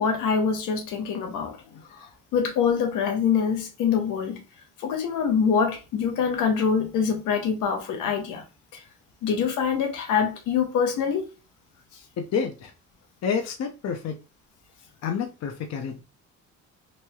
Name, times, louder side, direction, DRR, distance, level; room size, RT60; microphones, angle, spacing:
voice 1, 0.0-1.6 2.3-4.4 4.8-8.4 8.7-8.8 9.2-11.2, left 6 dB, 90° left, 0.8 m, -24 dB
voice 2, 12.2-12.7 13.2-14.2 15.0-16.0, left 6 dB, 60° left, 0.6 m, -29 dB
3.0 x 2.7 x 2.3 m
cardioid pair, 90°, 30 cm